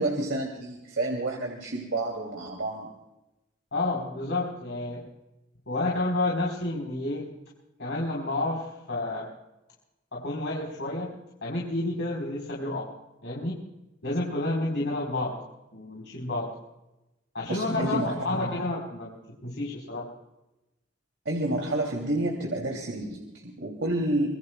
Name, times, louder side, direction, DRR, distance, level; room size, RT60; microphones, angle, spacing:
voice 1, 0.0-2.9 17.5-18.1 21.2-24.3, right 2 dB, 85° right, 0 dB, 2.7 m, -29 dB
voice 2, 3.7-5.1 5.7-7.3 7.8-9.3 10.1-11.1 11.4-12.9 13.2-13.5 14.0-15.4 15.7-16.5 17.3-19.1 19.4-20.1, left 2 dB, 70° left, -3 dB, 3.9 m, -30 dB
26.0 x 21.5 x 2.2 m, 0.96 s
head